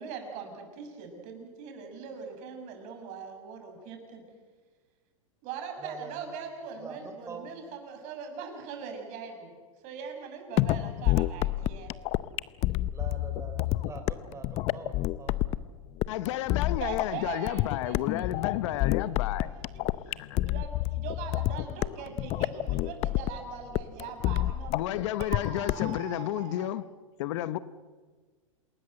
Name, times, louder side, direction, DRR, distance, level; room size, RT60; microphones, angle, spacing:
voice 1, 0.0-4.2 5.4-9.5 9.8-12.0 16.8-18.4 19.0-19.7 20.1-24.7 25.2-26.7, right 6 dB, 45° right, 6.8 m, -41 dB
voice 2, 5.8-6.3 6.8-7.5 12.9-15.4, right 4 dB, 15° right, 4.9 m, -44 dB
sound 1, 10.6-26.0, left 16 dB, 35° left, 0.7 m, -29 dB
voice 3, 16.1-19.5 20.1-20.5 24.7-26.8 27.2-27.6, left 13 dB, 60° left, 1.0 m, -32 dB
28.0 x 20.0 x 7.9 m
hypercardioid pair, 120°, 17 cm